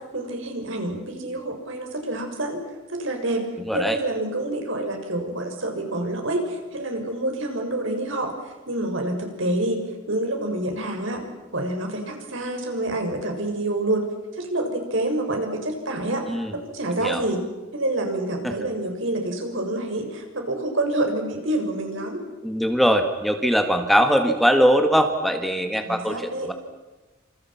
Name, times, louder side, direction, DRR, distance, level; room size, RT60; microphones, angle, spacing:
voice 1, 0.1-2.6 2.9-3.5 3.7-8.3 8.7-11.2 11.5-14.1 14.4-17.4 17.7-22.2 25.8-26.5, right 1 dB, 65° right, 4 dB, 6.5 m, -27 dB
voice 2, 3.6-4.0 16.3-16.5 17.0-17.2 18.4-18.6 22.4-26.5, equal, ahead, 6 dB, 1.9 m, -21 dB
29.0 x 27.5 x 6.0 m, 1.2 s
head